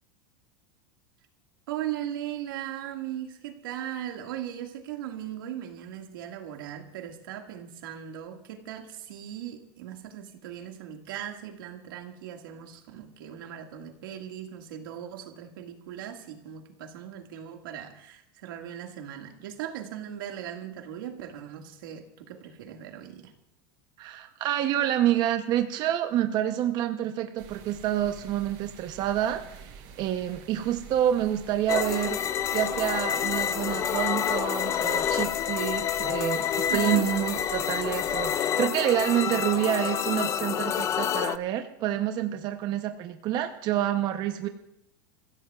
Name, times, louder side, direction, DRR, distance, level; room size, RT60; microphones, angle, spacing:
voice 1, 1.7-23.3 36.7-37.1 44.4-44.5, right 10 dB, 85° right, 4 dB, 2.0 m, -38 dB
voice 2, 24.0-32.2 32.5-44.5, right 11 dB, 40° right, 7 dB, 0.8 m, -28 dB
sound 1, 27.4-38.4, right 7 dB, 60° right, 4.3 m, -48 dB
sound 2, 31.7-41.4, left 9 dB, 25° left, 0.5 m, -28 dB
29.0 x 15.5 x 2.4 m, 0.80 s
supercardioid pair, 145°, 11 cm